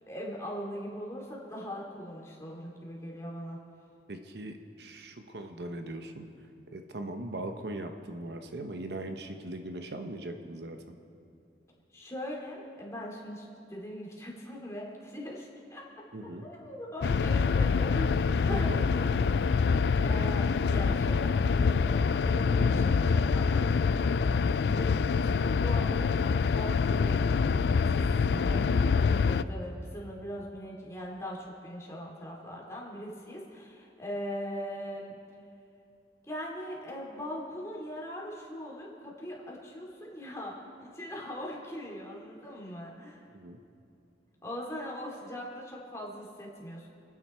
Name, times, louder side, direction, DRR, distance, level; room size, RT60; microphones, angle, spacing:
voice 1, 0.1-3.6 11.9-16.0 16.4-19.4 20.0-23.6 24.6-26.2 26.4-27.8 28.3-35.2 36.3-43.2 44.4-46.9, equal, 15° left, -3 dB, 2.6 m, -40 dB
voice 2, 4.1-6.3 6.7-10.8 16.1-16.5 18.5-18.8 43.3-43.6, right 1 dB, 70° right, 6 dB, 0.9 m, -39 dB
sound 1, 17.0-29.4, left 5 dB, 70° left, 0.4 m, -26 dB
28.0 x 9.6 x 4.4 m, 2.5 s
head